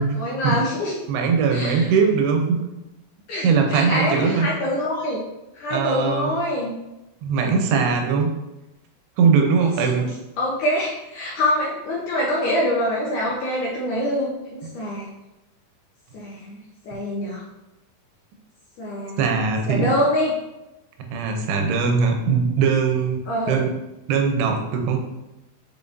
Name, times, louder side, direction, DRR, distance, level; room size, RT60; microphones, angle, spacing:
voice 1, 0.2-1.0 1.5-1.9 3.3-5.2 5.6-6.8 9.6-10.1 10.4-15.1 16.1-17.4 18.8-19.2 19.7-20.3 23.3-23.6, left 1 dB, 75° left, -4 dB, 2.0 m, -25 dB
voice 2, 1.1-2.6 3.4-4.5 5.7-6.3 7.2-8.3 9.2-10.1 19.2-19.9 21.1-23.2 23.5-23.7 24.1-25.1, right 5 dB, 90° right, 4 dB, 2.9 m, -20 dB
7.2 x 5.1 x 2.7 m, 0.95 s
omnidirectional pair, 4.6 m